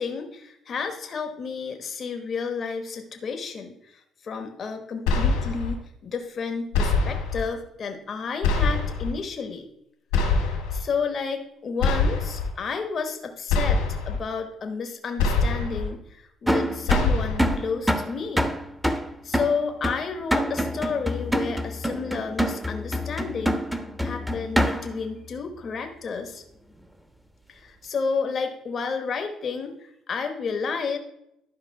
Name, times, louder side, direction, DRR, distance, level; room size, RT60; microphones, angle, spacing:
voice 1, 0.0-9.7 10.7-18.5 19.2-23.7 24.0-26.4 27.5-31.0, left 5 dB, 50° left, 5 dB, 1.1 m, -31 dB
sound 1, 5.1-5.7 6.7-7.4 8.4-9.1 10.1-10.8 11.8-12.5 13.5-14.2 15.2-15.9 16.9-17.6, left 4 dB, 85° left, 2.2 m, -23 dB
sound 2, 16.5-25.1, equal, 5° right, 1.1 m, -26 dB
11.5 x 4.9 x 4.6 m, 0.79 s
hypercardioid pair, 60°, 0 cm